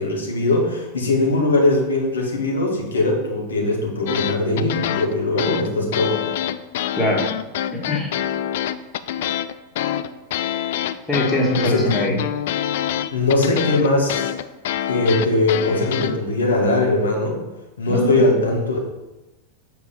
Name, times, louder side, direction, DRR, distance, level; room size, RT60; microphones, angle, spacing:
voice 1, 0.0-6.3 11.6-12.2 13.1-14.3 14.9-17.4 17.8-18.8, left 2 dB, 70° left, 0 dB, 1.5 m, -20 dB
sound 1, 4.1-16.2, left 11 dB, 55° left, 0.3 m, -26 dB
voice 2, 7.0-7.3 7.7-8.1 11.1-12.1 17.9-18.2, left 1 dB, 10° left, -2 dB, 1.6 m, -22 dB
6.8 x 4.6 x 4.3 m, 1.0 s
figure-of-eight pair, 90°, 0 cm